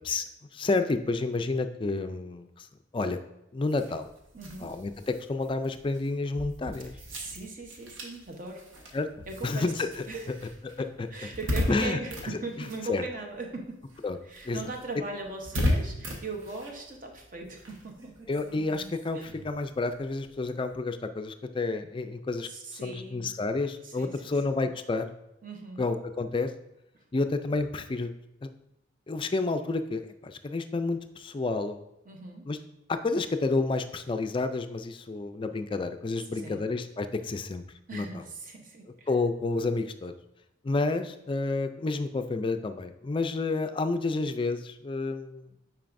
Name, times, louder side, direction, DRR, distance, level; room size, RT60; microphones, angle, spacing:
voice 1, 0.5-2.7 2.9-3.2 3.5-4.1 4.6-6.9 8.9-9.1 9.4-10.0 10.8-11.1 11.7-12.0 12.9-13.0 14.0-14.2 14.5-14.6 18.3-22.5 22.8-25.1 25.8-26.5 27.1-28.1 28.4-28.5 29.1-31.8 32.5-32.6 32.9-37.6 37.9-38.1 39.1-40.1 40.6-45.5, left 3 dB, 25° left, 8 dB, 0.3 m, -30 dB
sound 1, 3.6-13.5 13.8-20.8, left 1 dB, 85° right, 1.3 m, -37 dB
voice 2, 4.3-4.8 7.1-8.7 9.3-10.5 10.8-13.9 14.3-18.1 19.1-19.3 22.4-23.4 23.8-24.7 25.4-25.8 32.1-32.5 36.4-36.6 37.9-39.1, right 3 dB, 45° right, 2 dB, 0.9 m, -40 dB
9.0 x 4.6 x 2.6 m, 0.86 s
head